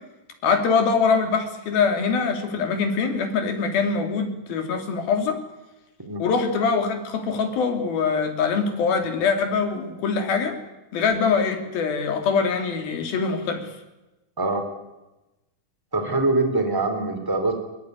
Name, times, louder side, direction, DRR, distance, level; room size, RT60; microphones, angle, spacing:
voice 1, 0.4-5.4 6.2-10.6 10.9-13.7, left 5 dB, 85° left, 6 dB, 4.6 m, -23 dB
voice 2, 15.9-17.5, right 2 dB, 5° right, 6 dB, 3.2 m, -23 dB
21.5 x 21.0 x 9.7 m, 1.0 s
omnidirectional pair, 4.1 m